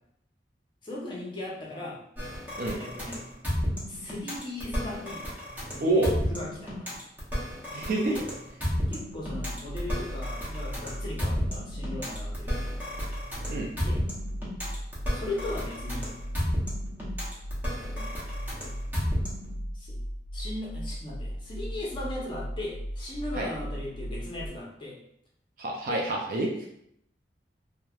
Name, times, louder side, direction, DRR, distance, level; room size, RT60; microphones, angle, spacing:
voice 1, 0.8-2.0 2.8-3.2 3.9-5.2 5.7-7.0 8.1-8.3 8.9-12.9 13.8-14.0 15.1-16.1 17.7-18.1 19.7-20.0 20.3-25.0 25.8-26.0, left 1 dB, 25° left, -4 dB, 0.7 m, -38 dB
sound 1, 2.2-19.6, equal, 10° right, 0.7 m, -32 dB
voice 2, 5.8-6.1 7.7-8.1 13.5-13.7 23.3-23.5 25.6-26.7, right 2 dB, 50° right, 0 dB, 0.4 m, -27 dB
sound 2, 9.2-24.5, equal, 75° left, 0.5 m, -37 dB
3.1 x 2.1 x 2.3 m, 0.73 s
head